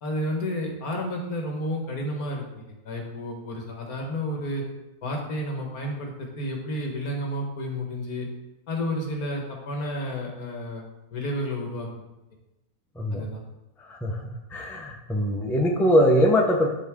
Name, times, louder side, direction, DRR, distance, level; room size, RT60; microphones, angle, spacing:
voice 1, 0.0-4.6 5.0-8.3 8.7-10.9 11.1-12.0 13.1-13.4, left 1 dB, 70° left, 1 dB, 1.9 m, -31 dB
voice 2, 13.0-13.3 13.9-14.2 14.5-16.7, equal, ahead, 0 dB, 0.6 m, -22 dB
12.0 x 4.0 x 3.7 m, 0.98 s
omnidirectional pair, 1.6 m